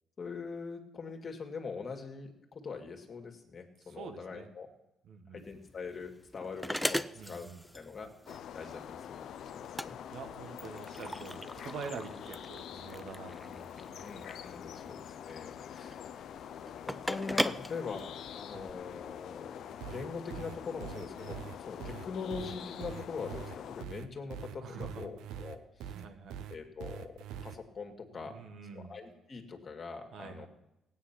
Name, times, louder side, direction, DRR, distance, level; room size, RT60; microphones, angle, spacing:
voice 1, 0.2-4.7 5.3-7.5 7.7-8.1 8.5-9.3 9.5-10.0 12.6-12.8 14.0-16.1 16.8-21.4 21.7-25.9 26.5-27.1 27.4-28.4 28.7-30.5, left 5 dB, 45° left, 3 dB, 2.3 m, -42 dB
voice 2, 3.8-4.5 5.0-5.4 7.1-7.7 10.1-14.1 14.7-15.0 18.5-18.7 24.6-25.1 25.9-26.5 28.3-28.9 30.1-30.5, right 5 dB, 65° right, 5 dB, 1.6 m, -46 dB
sound 1, 5.4-18.7, equal, ahead, 0.5 m, -39 dB
sound 2, 8.3-23.8, left 9 dB, 70° left, 0.7 m, -45 dB
sound 3, 19.8-27.6, right 9 dB, 85° right, 0.8 m, -43 dB
16.0 x 9.3 x 5.9 m, 0.91 s
cardioid pair, 90°, 0 cm